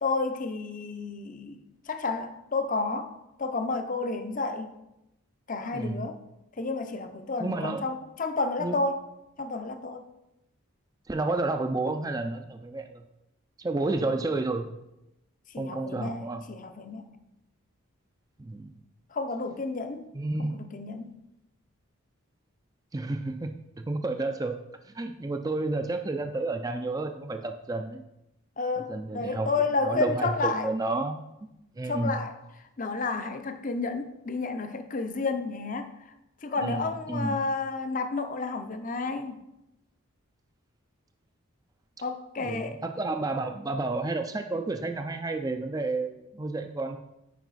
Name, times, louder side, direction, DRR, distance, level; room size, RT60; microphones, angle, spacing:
voice 1, 0.0-4.7 5.5-6.2 6.6-9.0 9.4-10.1 15.5-17.1 19.1-20.0 20.4-21.1 28.6-30.7 31.8-32.4 32.8-36.1 36.4-39.4 42.0-42.8, left 3 dB, 35° left, 8 dB, 0.5 m, -31 dB
voice 2, 5.7-6.1 7.4-7.8 8.6-8.8 11.1-13.0 13.6-14.7 15.6-16.4 18.4-18.7 20.1-20.6 22.9-23.5 23.9-24.5 24.9-28.0 28.9-29.5 29.9-31.2 31.8-32.1 36.6-36.8 37.1-37.4 42.4-47.0, right 2 dB, 15° right, 6 dB, 0.3 m, -30 dB
9.2 x 4.8 x 4.0 m, 0.89 s
head